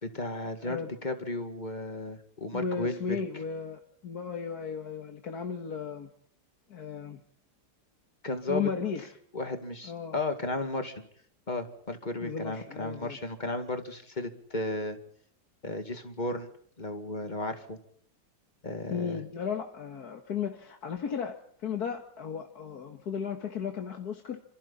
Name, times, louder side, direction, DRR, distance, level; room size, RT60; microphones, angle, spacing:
voice 1, 0.0-3.2 8.2-8.7 9.3-11.0 11.5-15.0 15.6-16.5 16.8-17.8 18.6-19.2, left 2 dB, 25° left, 6 dB, 2.3 m, -34 dB
voice 2, 2.5-6.1 6.7-7.2 8.5-9.1 9.8-10.2 12.2-13.2 18.9-24.4, left 6 dB, 65° left, 4 dB, 2.0 m, -35 dB
28.5 x 26.5 x 4.2 m, 0.63 s
omnidirectional pair, 1.8 m